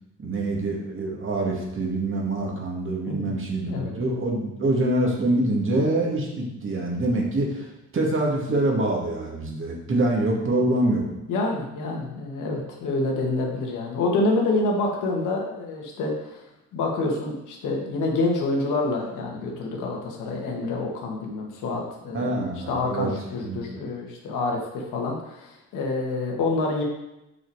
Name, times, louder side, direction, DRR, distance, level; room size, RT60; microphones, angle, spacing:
voice 1, 0.2-11.0 22.1-23.1 23.4-23.6, right 2 dB, 40° right, -1 dB, 2.2 m, -25 dB
voice 2, 11.3-16.4 16.7-22.3 22.7-26.8, left 2 dB, 85° left, 0 dB, 1.9 m, -27 dB
6.4 x 5.9 x 4.8 m, 0.89 s
cardioid pair, 90°, 30 cm